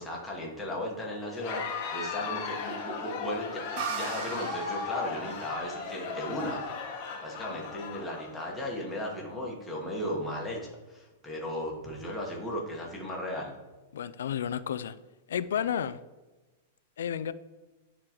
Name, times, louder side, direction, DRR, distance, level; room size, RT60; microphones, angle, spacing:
voice 1, 0.0-6.6 7.2-13.5, left 1 dB, 5° left, 1.2 m, -36 dB
Crowd, 1.3-8.8, left 5 dB, 40° left, 0.9 m, -37 dB
sound 1, 3.8-7.3, right 7 dB, 45° right, 0.6 m, -40 dB
voice 2, 13.9-15.0 15.3-16.0 17.0-17.3, left 9 dB, 85° left, 0.3 m, -31 dB
9.4 x 3.7 x 3.0 m
supercardioid pair, 155°, 0 cm